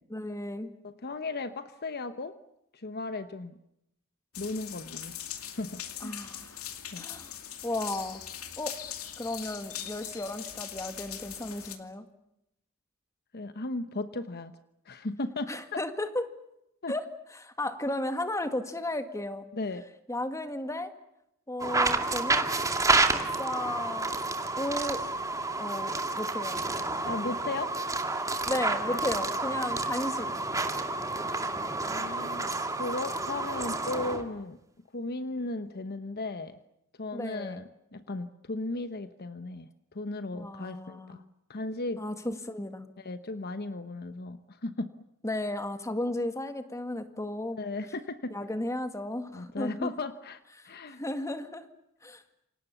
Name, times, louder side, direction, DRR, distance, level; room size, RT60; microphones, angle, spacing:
voice 1, 0.1-0.7 6.0-6.6 7.0-7.3 7.6-8.2 8.6-8.8 9.2-12.1 15.5-16.3 16.9-17.1 17.4-19.5 20.1-20.9 21.5-22.5 23.0-23.1 23.4-24.1 24.6-25.0 25.6-26.6 28.4-30.3 37.1-37.6 40.3-41.2 42.0-42.9 45.2-47.6 48.3-49.9 50.6-51.7 52.0-52.2, left 1 dB, 15° left, 8 dB, 2.0 m, -34 dB
voice 2, 0.8-2.4 2.7-3.5 4.4-5.2 5.6-6.2 6.9-7.1 13.3-14.5 14.9-15.8 16.8-16.9 19.5-19.9 27.0-27.8 28.9-29.0 31.9-34.6 34.9-36.6 37.0-41.2 41.5-42.0 43.0-44.9 47.6-48.4 49.3-51.0, left 2 dB, 50° left, 11 dB, 1.0 m, -36 dB
sound 1, 4.3-11.8, left 10 dB, 85° left, 2.6 m, -41 dB
sound 2, 21.6-34.2, right 3 dB, 15° right, 2.3 m, -29 dB
28.5 x 25.0 x 7.1 m, 0.82 s
head